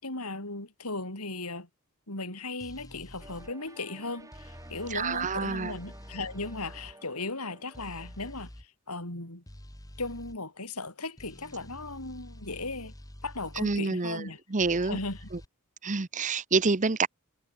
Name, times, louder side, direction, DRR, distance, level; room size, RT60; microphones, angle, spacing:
voice 1, 0.0-1.7 2.1-9.4 10.0-12.9 13.2-14.4 14.8-15.3, left 2 dB, 80° left, 6.9 m, -37 dB
sound 1, 2.6-3.5 4.3-6.9 7.7-8.7 9.5-10.4 11.2-13.8 14.6-15.5, equal, 15° left, 2.0 m, -47 dB
sound 2, 3.2-8.3, right 2 dB, 15° right, 4.3 m, -53 dB
voice 2, 4.9-5.7 13.6-14.2 14.5-15.0 15.8-17.1, right 4 dB, 35° right, 0.8 m, -27 dB
head